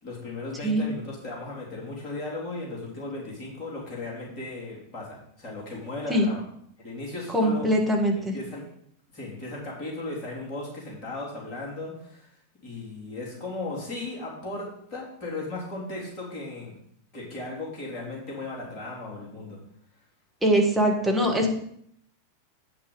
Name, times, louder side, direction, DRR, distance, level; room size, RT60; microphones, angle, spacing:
voice 1, 0.0-6.4 6.8-7.7 8.1-8.6 9.1-16.7 17.1-19.6, left 2 dB, 35° left, -5 dB, 3.6 m, -36 dB
voice 2, 7.3-8.4 20.4-21.5, equal, 5° right, -1 dB, 1.9 m, -22 dB
8.9 x 5.9 x 5.1 m, 0.69 s
figure-of-eight pair, 90°, 0 cm